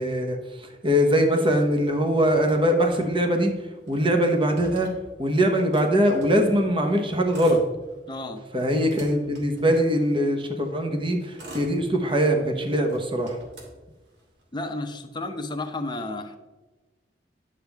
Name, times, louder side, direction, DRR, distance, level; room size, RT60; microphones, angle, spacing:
voice 1, 0.0-3.5 3.9-4.9 5.2-7.6 8.5-13.4, equal, 30° right, 4 dB, 1.1 m, -22 dB
Motor vehicle (road), 1.5-3.1 3.4-3.5 3.7-6.5 7.2-8.2 8.6-10.4 11.0-12.4 12.8-14.4, right 1 dB, 75° right, 2.6 m, -45 dB
voice 2, 8.1-8.4 14.5-16.4, left 2 dB, 25° left, 5 dB, 0.8 m, -32 dB
10.5 x 7.3 x 3.5 m, 1.2 s
head